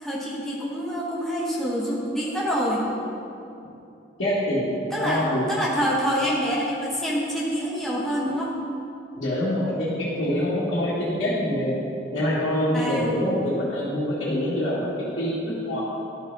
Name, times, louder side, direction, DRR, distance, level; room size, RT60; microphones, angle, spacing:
voice 1, 0.0-2.9 4.9-8.5 12.7-13.1, equal, ahead, -6 dB, 1.1 m, -26 dB
voice 2, 4.2-4.7 5.0-5.4 9.2-11.7 12.1-15.8, left 1 dB, 85° left, -11 dB, 1.8 m, -25 dB
12.0 x 5.3 x 4.0 m, 2.7 s
head